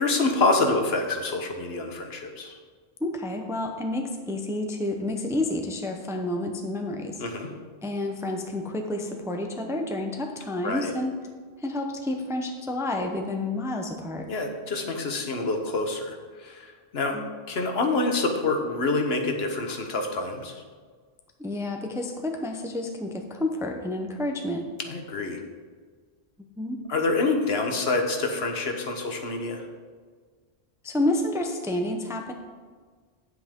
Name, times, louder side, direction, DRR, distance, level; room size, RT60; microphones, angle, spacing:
voice 1, 0.0-2.6 7.2-7.5 10.6-10.9 14.3-17.2 17.5-20.6 24.9-25.4 26.9-29.6, left 3 dB, 65° left, 4 dB, 1.3 m, -27 dB
voice 2, 3.0-7.2 7.8-11.1 11.6-14.3 17.1-17.3 21.4-24.6 26.6-26.8 30.8-32.3, left 1 dB, 5° right, 3 dB, 0.6 m, -29 dB
9.7 x 8.3 x 3.7 m, 1.6 s
omnidirectional pair, 1.1 m